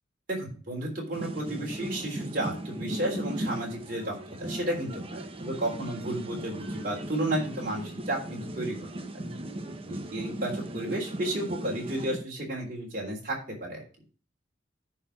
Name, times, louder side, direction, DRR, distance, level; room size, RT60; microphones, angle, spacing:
voice 1, 0.3-8.7 9.8-13.3 13.6-13.8, right 1 dB, 45° right, -2 dB, 3.4 m, -32 dB
sound 1, 1.1-12.2, right 1 dB, 30° right, 0.9 m, -37 dB
10.0 x 4.5 x 6.0 m, 0.38 s
head